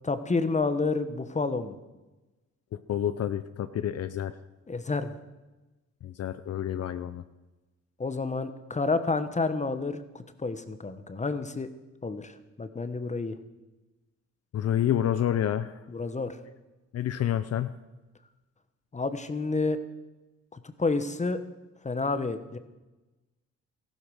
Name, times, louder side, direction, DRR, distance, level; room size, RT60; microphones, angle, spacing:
voice 1, 0.0-1.8 4.7-5.1 8.0-11.7 12.0-13.4 15.9-16.4 18.9-19.8 20.5-21.4 21.8-22.6, left 3 dB, 25° left, 11 dB, 1.1 m, -29 dB
voice 2, 2.7-4.3 6.0-7.2 14.5-15.8 16.9-17.8, left 10 dB, 55° left, 12 dB, 0.7 m, -29 dB
14.0 x 12.0 x 6.4 m, 1.1 s
cardioid pair, 90°, 30 cm